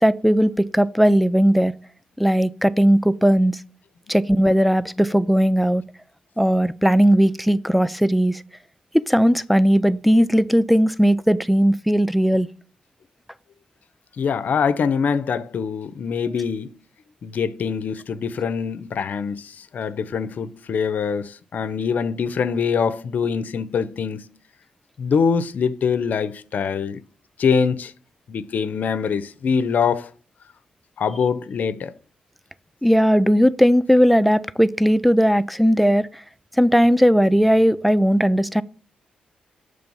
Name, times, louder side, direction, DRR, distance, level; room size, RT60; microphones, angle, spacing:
voice 1, 0.0-1.7 2.2-3.6 4.1-5.8 6.4-8.4 8.9-12.5 32.8-36.2 36.6-38.6, equal, ahead, 0.4 m, -17 dB
voice 2, 14.2-16.7 17.2-24.3 25.0-27.0 27.4-27.9 28.3-30.1 31.0-31.9, left 6 dB, 65° left, 0.5 m, -24 dB
6.8 x 3.3 x 5.4 m
supercardioid pair, 50°, 3 cm